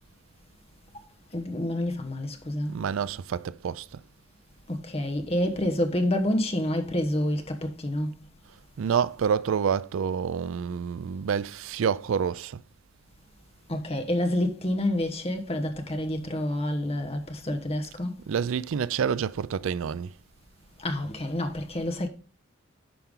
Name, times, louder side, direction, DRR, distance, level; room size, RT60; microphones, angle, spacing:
voice 1, 1.3-2.7 4.7-8.2 13.7-18.2 20.8-22.1, left 1 dB, 30° left, 1.2 m, -28 dB
voice 2, 2.7-4.0 8.8-12.6 18.3-20.1, right 7 dB, 70° right, 0.4 m, -28 dB
10.0 x 5.7 x 3.7 m
head